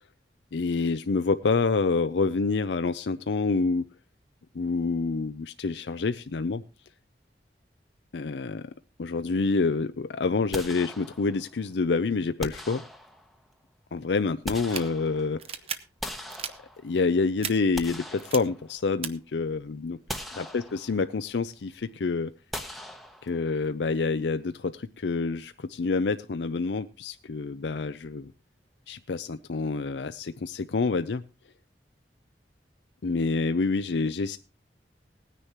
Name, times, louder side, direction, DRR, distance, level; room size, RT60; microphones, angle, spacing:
voice 1, 0.5-3.8 4.5-6.6 8.1-8.6 9.0-12.8 13.9-15.4 16.8-20.0 20.4-22.3 23.2-28.3 28.9-31.2 33.0-34.4, left 4 dB, 80° left, 10 dB, 0.5 m, -27 dB
sound 1, 10.5-11.6 12.4-13.5 14.1-15.5 16.0-17.1 17.5-19.0 19.4-19.5 20.1-21.2 22.5-23.6, equal, ahead, 0.9 m, -40 dB
sound 2, 14.5-14.8 15.4-15.8 16.3-16.5 17.4-17.5 18.2-18.4 19.0-19.1, right 7 dB, 35° right, 0.8 m, -34 dB
18.5 x 9.9 x 3.0 m, 0.28 s
head